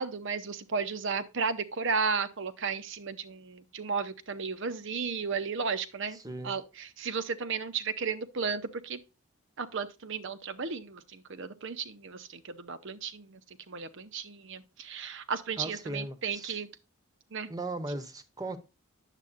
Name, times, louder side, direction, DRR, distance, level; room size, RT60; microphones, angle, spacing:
voice 1, 0.0-6.2 6.4-9.0 9.6-13.4 13.7-16.7 17.3-17.5, right 5 dB, 60° right, 0.7 m, -34 dB
voice 2, 6.1-6.6 15.6-16.6 17.5-18.6, right 2 dB, 15° right, 0.8 m, -38 dB
9.9 x 7.5 x 2.5 m
head